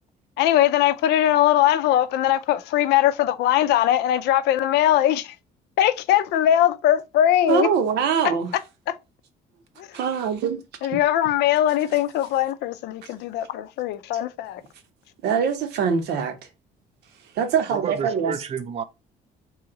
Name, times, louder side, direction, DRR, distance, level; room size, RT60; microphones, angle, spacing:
voice 1, 0.4-5.4 5.8-7.7 8.9-9.0 9.8-10.0 10.8-14.6, left 12 dB, 80° left, 0.5 m, -20 dB
voice 2, 7.5-8.5 9.9-10.6 15.2-16.4 17.3-18.3, right 6 dB, 75° right, 0.9 m, -23 dB
voice 3, 17.7-18.8, right 7 dB, 35° right, 0.5 m, -30 dB
3.1 x 2.8 x 3.7 m
cardioid pair, 110°, 17 cm